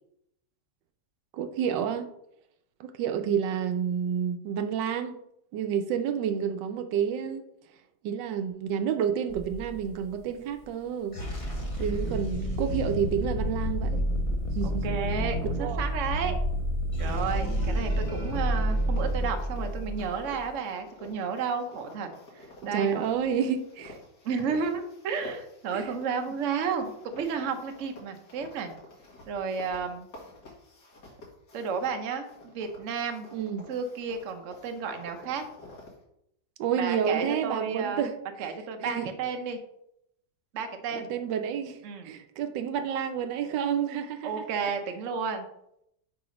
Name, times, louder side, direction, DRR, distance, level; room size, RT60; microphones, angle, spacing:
voice 1, 1.3-2.1 2.8-5.1 5.5-7.5 8.0-11.2 11.8-14.0 14.5-14.8 15.6-15.8 22.7-24.0 25.7-25.9 33.3-33.6 36.6-38.1 38.8-39.1 40.9-41.8 42.0-44.4, right 8 dB, 90° right, 8 dB, 1.3 m, -29 dB
sound 1, 9.3-10.0 11.0-20.4, equal, 25° left, 0.7 m, -29 dB
voice 2, 11.9-12.9 14.6-16.4 17.0-22.1 22.3-23.1 24.2-28.7 29.3-30.1 31.5-32.3 32.5-33.3 33.7-35.4 36.7-38.1 38.4-39.6 40.5-41.1 41.8-42.1 44.2-45.5, right 5 dB, 55° right, 6 dB, 1.0 m, -32 dB
sound 2, 17.0-20.7, right 1 dB, 20° right, 1.6 m, -43 dB
sound 3, 17.9-31.9 32.2-36.0, left 2 dB, 70° left, 2.2 m, -50 dB
4.8 x 4.7 x 5.1 m, 0.77 s
omnidirectional pair, 1.9 m